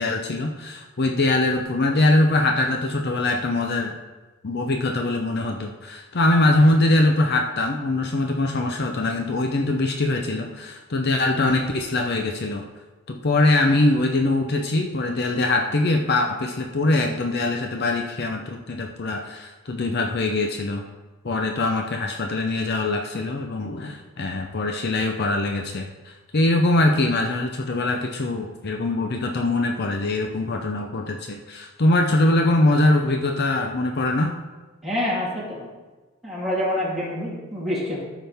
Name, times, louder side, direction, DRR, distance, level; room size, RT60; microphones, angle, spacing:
voice 1, 0.0-3.9 4.4-12.6 13.1-20.8 21.2-34.3, left 2 dB, 55° left, 3 dB, 0.7 m, -22 dB
voice 2, 34.8-35.7 36.2-38.0, left 1 dB, ahead, -8 dB, 3.0 m, -26 dB
14.0 x 6.1 x 3.5 m, 1.2 s
head